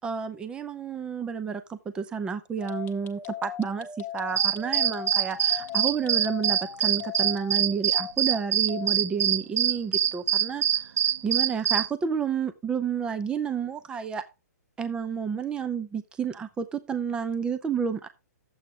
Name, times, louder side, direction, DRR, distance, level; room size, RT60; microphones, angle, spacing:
voice 1, 0.0-10.9 11.2-14.2 14.8-18.1, right 6 dB, 10° right, 11 dB, 0.6 m, -30 dB
sound 1, 2.6-8.9, left 9 dB, 20° left, 1.1 m, -39 dB
sound 2, 4.4-11.9, right 10 dB, 60° right, 0.5 m, -24 dB
11.0 x 7.9 x 3.7 m, 0.27 s
hypercardioid pair, 150°, 9 cm